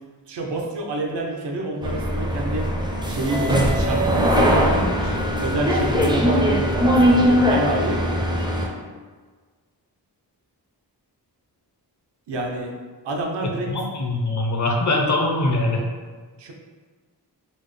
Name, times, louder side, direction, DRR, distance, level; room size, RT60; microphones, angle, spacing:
voice 1, 0.3-2.7 3.1-8.0 12.3-12.7 13.0-13.7 16.4-16.5, right 1 dB, 85° right, 1 dB, 0.6 m, -28 dB
sound 1, 1.8-8.7, equal, 10° right, 0.4 m, -20 dB
voice 2, 13.7-15.9, left 2 dB, 45° left, 0 dB, 0.6 m, -22 dB
4.2 x 2.0 x 3.1 m, 1.5 s
wide cardioid pair, 120°, 41 cm